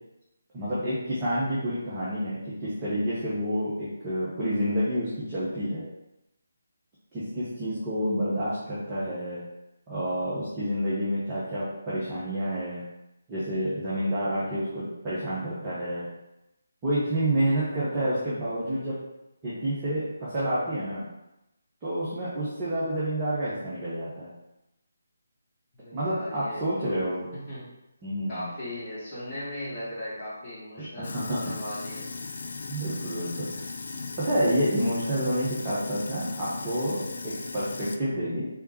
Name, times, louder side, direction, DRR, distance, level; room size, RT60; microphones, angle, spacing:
voice 1, 0.5-5.9 7.1-9.4 9.9-12.9 13.3-16.1 16.8-19.0 19.4-21.1 21.8-24.3 25.9-27.3 28.0-28.5 30.9-31.6 32.7-33.6 34.2-38.5, equal, 20° right, -10 dB, 0.9 m, -29 dB
voice 2, 25.7-27.7 28.3-32.0, left 1 dB, 20° left, -13 dB, 1.4 m, -38 dB
Sink (filling or washing), 31.0-38.0, left 4 dB, 55° left, 0.3 m, -37 dB
3.6 x 3.4 x 3.0 m, 0.92 s
figure-of-eight pair, 150°, 0 cm